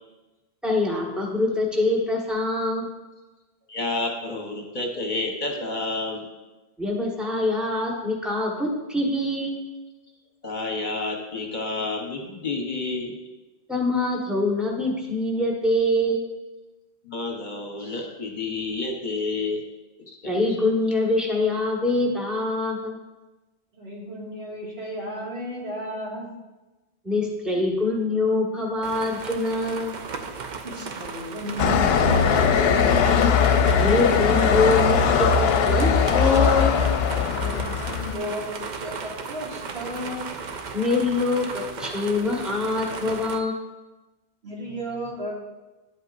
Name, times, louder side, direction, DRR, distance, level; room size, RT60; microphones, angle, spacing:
voice 1, 0.6-2.9 6.8-9.6 13.7-16.3 20.2-23.0 27.0-29.9 33.8-36.8 40.7-43.5, left 2 dB, ahead, -2 dB, 1.3 m, -24 dB
voice 2, 3.7-6.3 10.4-13.2 17.0-19.6 20.0-20.3, left 3 dB, 50° left, 1 dB, 1.1 m, -30 dB
voice 3, 23.8-26.3 30.6-33.3 37.4-39.0 39.3-40.3 44.4-45.3, equal, 80° right, -4 dB, 2.3 m, -33 dB
sound 1, 28.8-43.4, right 5 dB, 55° right, 0.7 m, -35 dB
sound 2, 31.6-38.1, left 6 dB, 75° left, 0.8 m, -20 dB
10.5 x 8.0 x 2.6 m, 1.1 s
omnidirectional pair, 1.0 m